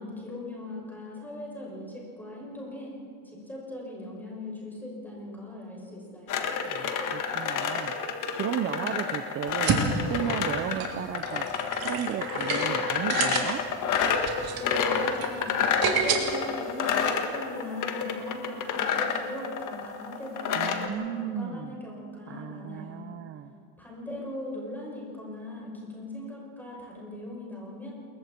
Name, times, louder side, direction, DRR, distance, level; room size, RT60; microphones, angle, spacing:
voice 1, 0.0-3.0 3.2-6.4 14.6-15.5 15.8-23.1 23.8-27.9, left 1 dB, 5° left, -4 dB, 6.1 m, -39 dB
sound 1, 6.3-20.9, left 6 dB, 40° left, 1.7 m, -29 dB
voice 2, 6.7-11.5 11.8-13.6 20.5-21.7 22.3-23.5, right 10 dB, 30° right, 10 dB, 0.6 m, -34 dB
sound 2, 9.5-16.2, right 6 dB, 50° right, 2.9 m, -30 dB
28.5 x 22.0 x 4.5 m, 2.4 s
cardioid pair, 155°, 48 cm